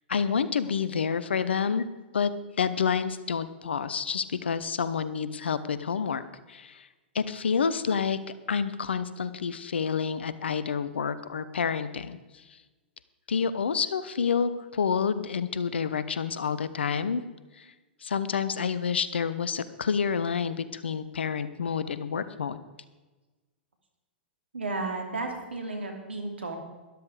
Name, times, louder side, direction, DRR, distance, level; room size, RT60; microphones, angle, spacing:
voice 1, 0.1-1.8 2.1-2.3 2.6-6.9 7.1-8.2 8.5-12.4 13.3-17.2 17.6-17.7 18.0-22.6, left 6 dB, 75° left, 14 dB, 0.9 m, -28 dB
voice 2, 24.5-26.6, right 3 dB, 85° right, 4 dB, 2.8 m, -33 dB
13.0 x 12.0 x 4.9 m, 1.2 s
hypercardioid pair, 110°, 6 cm